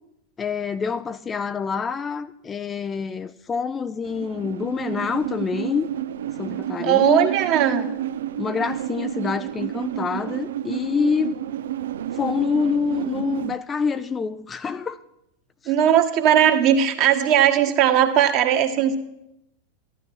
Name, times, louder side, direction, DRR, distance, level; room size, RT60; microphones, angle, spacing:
voice 1, 0.4-5.9 6.4-7.3 8.4-11.4 12.1-15.0 15.6-15.7, left 5 dB, 20° left, 0.4 m, -26 dB
sound 1, 4.0-13.6, right 11 dB, 60° right, 0.4 m, -30 dB
voice 2, 6.8-7.9 15.7-19.0, right 10 dB, 40° right, 1.5 m, -18 dB
14.5 x 12.0 x 4.7 m
figure-of-eight pair, 90°, 0 cm